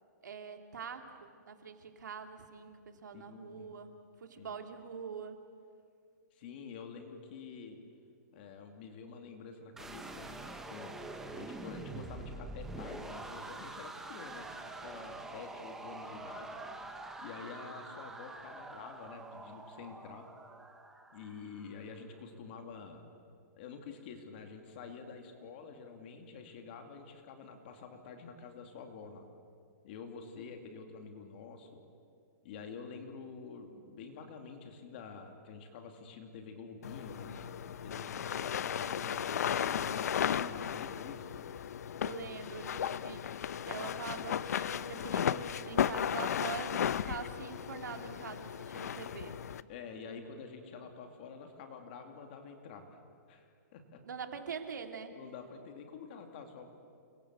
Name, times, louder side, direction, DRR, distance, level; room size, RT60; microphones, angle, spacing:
voice 1, 0.2-3.9 4.2-5.4 42.0-49.4 54.0-55.1, right 6 dB, 85° right, 5 dB, 2.9 m, -44 dB
voice 2, 3.1-3.7 4.4-4.5 6.3-7.8 8.3-11.0 11.3-16.6 17.2-20.3 21.1-23.0 23.5-29.3 29.8-31.8 32.4-41.3 49.7-53.0 53.3-54.0 55.1-56.7, left 5 dB, 35° left, 5 dB, 2.6 m, -48 dB
sound 1, 9.8-21.8, right 2 dB, 5° right, 1.1 m, -45 dB
sound 2, 36.8-49.6, left 9 dB, 60° left, 0.8 m, -35 dB
29.5 x 23.0 x 8.2 m, 2.3 s
hypercardioid pair, 175°, 10 cm